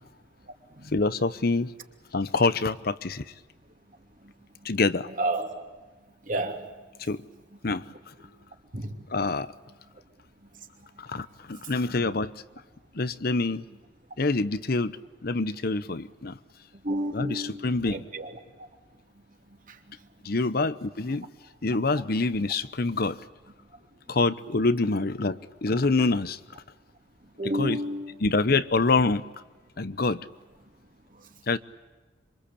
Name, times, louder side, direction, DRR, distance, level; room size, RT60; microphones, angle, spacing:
voice 1, 0.9-1.7 2.1-3.3 4.6-5.1 7.0-7.2 7.6-7.8 9.1-9.5 11.0-12.3 12.9-13.6 14.2-14.9 15.2-16.4 17.1-18.0 20.2-21.3 21.6-23.2 24.1-26.4 27.4-27.8 28.2-29.2 29.8-30.2 31.5-31.6, left 3 dB, 55° left, 0.9 m, -26 dB
voice 2, 5.2-5.5 6.3-6.6 8.7-8.9 16.8-17.6 17.9-18.3 27.4-28.1, right 1 dB, 45° right, 3.0 m, -30 dB
26.5 x 24.5 x 8.5 m
head